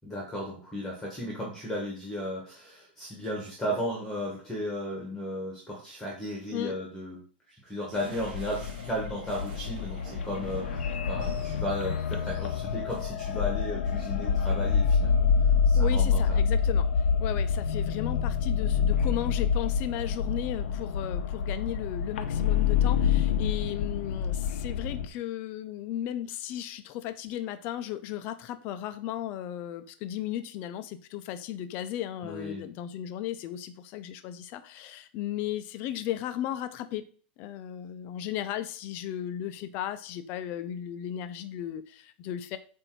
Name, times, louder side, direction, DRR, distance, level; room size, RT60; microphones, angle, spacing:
voice 1, 0.0-7.2 7.5-15.2 15.6-16.4 32.2-32.6, equal, 5° left, -2 dB, 1.2 m, -35 dB
sound 1, 7.9-13.0, right 2 dB, 55° right, 3.3 m, -48 dB
sound 2, 8.2-25.1, left 6 dB, 85° left, 0.7 m, -27 dB
voice 2, 15.7-16.9 17.2-37.0 37.4-42.6, left 12 dB, 30° left, 11 dB, 0.5 m, -35 dB
7.8 x 2.6 x 4.5 m, 0.42 s
supercardioid pair, 165°, 6 cm